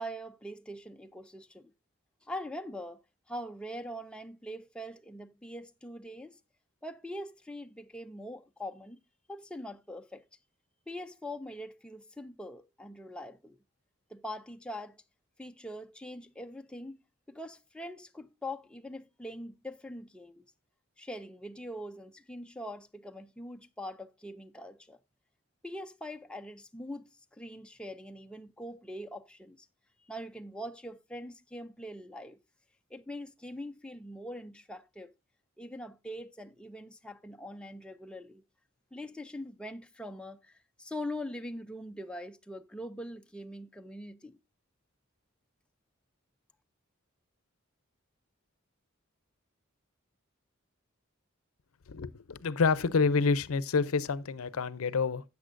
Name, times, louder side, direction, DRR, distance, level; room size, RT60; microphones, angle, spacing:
voice 1, 0.0-1.7 2.2-3.0 3.3-6.4 6.8-9.0 9.3-10.2 10.9-13.6 14.1-15.0 15.4-17.0 17.3-20.4 21.0-25.0 25.6-29.7 30.0-32.4 32.9-35.1 35.6-38.4 38.9-44.4, equal, 5° left, 0.4 m, -43 dB
voice 2, 51.9-55.2, left 4 dB, 80° left, 0.6 m, -28 dB
12.5 x 8.4 x 2.5 m
head